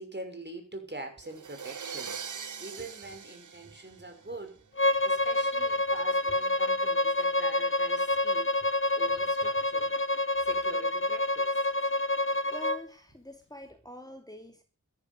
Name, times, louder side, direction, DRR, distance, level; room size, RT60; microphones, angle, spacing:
voice 1, 0.0-4.6 5.0-8.5 8.9-9.9 10.4-11.5, right 2 dB, 35° right, 6 dB, 6.3 m, -44 dB
sound 1, 1.2-4.5, right 7 dB, 70° right, 0.9 m, -41 dB
Bowed string instrument, 4.8-12.8, left 2 dB, 40° left, 1.2 m, -27 dB
voice 2, 12.5-14.6, left 1 dB, 10° left, 5 dB, 2.8 m, -45 dB
13.5 x 11.5 x 8.0 m, 0.36 s
wide cardioid pair, 55°, 31 cm